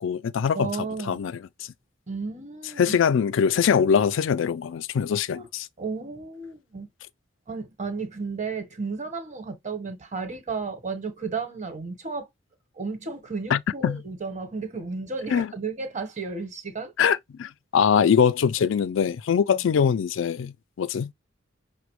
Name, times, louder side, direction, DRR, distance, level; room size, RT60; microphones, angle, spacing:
voice 1, 0.0-0.7 1.0-1.7 2.8-5.7 13.5-14.0 15.3-15.5 17.0-21.1, left 7 dB, 70° left, 0.4 m, -23 dB
voice 2, 0.5-1.2 2.1-3.0 5.3-5.5 5.8-6.9 7.5-12.3 12.8-16.9, right 4 dB, 35° right, 1.1 m, -33 dB
5.9 x 2.1 x 3.1 m
head